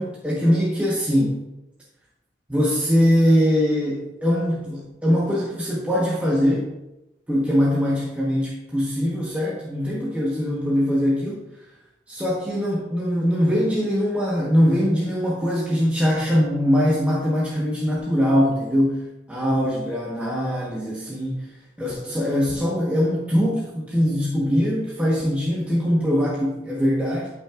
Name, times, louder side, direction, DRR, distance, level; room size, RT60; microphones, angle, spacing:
voice 1, 0.0-1.4 2.5-6.7 7.3-11.4 12.1-27.3, equal, 10° right, -6 dB, 1.2 m, -22 dB
12.5 x 5.6 x 2.5 m, 0.97 s
head